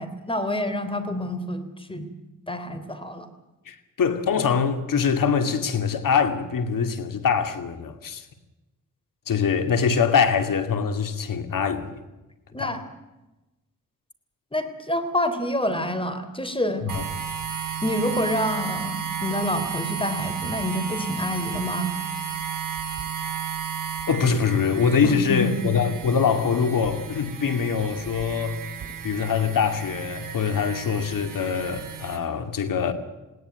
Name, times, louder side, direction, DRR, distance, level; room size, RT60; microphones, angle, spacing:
voice 1, 0.0-1.6 1.9-2.1 2.5-3.3 12.5-12.8 14.5-16.9 17.8-21.9 25.0-25.6, left 1 dB, 15° left, 3.5 m, -27 dB
voice 2, 3.7-8.2 9.3-12.0 12.6-12.8 16.8-17.1 24.1-28.6 29.0-32.9, left 6 dB, 75° left, 2.7 m, -23 dB
sound 1, 16.9-32.2, right 7 dB, 75° right, 5.9 m, -33 dB
20.5 x 17.5 x 9.3 m
cardioid pair, 85°, 33 cm